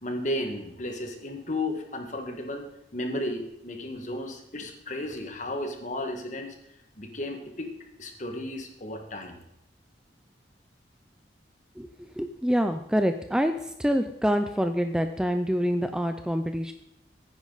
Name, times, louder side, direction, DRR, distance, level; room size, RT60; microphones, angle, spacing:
voice 1, 0.0-6.6 7.0-7.7 8.0-9.4, left 1 dB, 40° left, 4 dB, 1.8 m, -34 dB
voice 2, 12.2-16.7, equal, 5° right, 7 dB, 0.5 m, -26 dB
15.0 x 9.9 x 4.1 m, 0.81 s
head